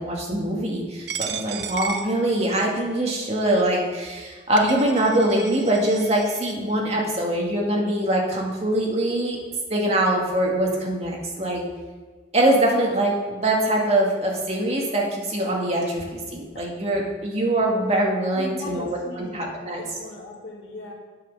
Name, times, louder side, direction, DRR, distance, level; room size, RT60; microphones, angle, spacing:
voice 1, 0.0-9.4 9.7-11.6 12.3-18.9 19.1-19.8, right 1 dB, 35° right, -1 dB, 1.7 m, -23 dB
Coin (dropping), 1.1-2.8 3.5-3.6 4.3-4.4 4.6-6.5, right 7 dB, 65° right, 0.7 m, -35 dB
voice 2, 18.4-20.9, left 2 dB, 85° left, -2 dB, 2.4 m, -38 dB
8.6 x 6.2 x 6.1 m, 1.5 s
head